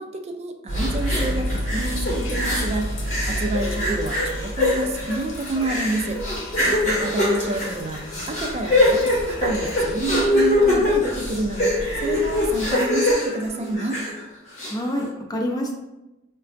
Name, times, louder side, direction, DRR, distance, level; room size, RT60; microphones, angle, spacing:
voice 1, 0.0-6.2 7.0-14.0, right 2 dB, 35° right, 5 dB, 0.4 m, -29 dB
sound 1, 0.7-12.7, equal, 85° left, 0.7 m, -31 dB
sound 2, 0.7-2.8 3.1-14.2 14.6-14.7, left 1 dB, 40° left, 1.2 m, -23 dB
voice 2, 6.6-7.0 14.6-15.7, equal, 20° left, 0 dB, 0.5 m, -28 dB
4.7 x 2.2 x 2.5 m, 0.99 s
head